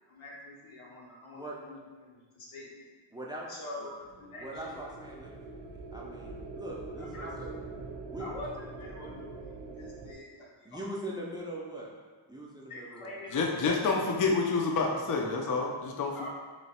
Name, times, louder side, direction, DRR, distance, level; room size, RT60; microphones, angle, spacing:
voice 1, 0.1-2.9 3.5-3.9 4.2-4.8 7.0-7.3 8.2-10.9 12.7-13.8 16.1-16.3, left 1 dB, 85° left, -4 dB, 1.0 m, -45 dB
voice 2, 3.1-3.5 3.8-3.9 4.4-7.6 8.1-8.3 10.6-11.9 12.3-13.1, right 1 dB, 10° right, -4 dB, 0.5 m, -41 dB
sound 1, 4.0-10.1, right 3 dB, 60° right, 0.6 m, -44 dB
voice 3, 13.3-16.3, left 4 dB, 40° left, 0 dB, 0.5 m, -28 dB
3.1 x 2.8 x 4.2 m, 1.4 s
wide cardioid pair, 100°, 50 cm